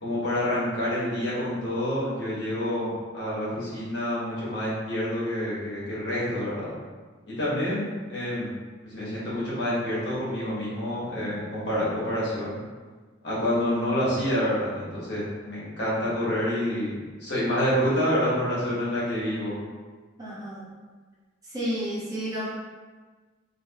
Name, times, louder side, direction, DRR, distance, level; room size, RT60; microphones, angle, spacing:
voice 1, 0.0-6.8 7.3-8.5 8.8-12.6 13.2-16.9 17.2-19.5, equal, 60° left, -8 dB, 1.4 m, -28 dB
voice 2, 20.2-20.7 21.4-22.5, equal, 20° right, -8 dB, 0.7 m, -31 dB
3.3 x 2.9 x 2.9 m, 1.4 s
head